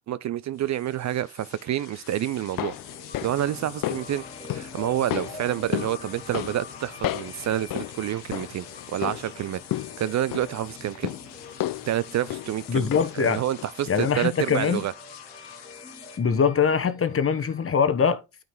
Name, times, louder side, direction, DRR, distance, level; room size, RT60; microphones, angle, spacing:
voice 1, 0.1-2.8 3.2-11.2 11.9-14.9, right 12 dB, 45° right, 0.4 m, -28 dB
sound 1, 0.5-16.2, left 9 dB, 85° left, 1.3 m, -47 dB
sound 2, 2.3-13.3 13.6-13.7, left 14 dB, 55° left, 0.6 m, -34 dB
sound 3, 2.3-17.7, left 2 dB, 10° left, 2.7 m, -45 dB
voice 2, 12.7-13.4 13.9-14.8 16.2-18.4, left 6 dB, 35° left, 1.1 m, -23 dB
9.1 x 5.0 x 3.8 m
supercardioid pair, 60°, 41 cm